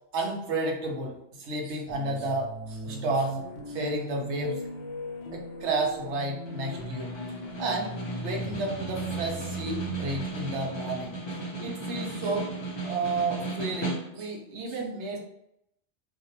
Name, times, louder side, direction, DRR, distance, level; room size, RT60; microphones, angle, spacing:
voice 1, 0.1-3.4 3.7-4.6 5.3-7.1 7.6-7.9 8.2-11.2 11.6-12.5 12.8-15.2, right 2 dB, 75° right, 0 dB, 0.9 m, -31 dB
sound 1, 1.9-11.8, right 1 dB, 90° left, 0.9 m, -39 dB
Snare drum, 6.5-14.4, right 2 dB, 40° left, 0.4 m, -36 dB
2.5 x 2.0 x 2.8 m, 0.78 s
omnidirectional pair, 1.2 m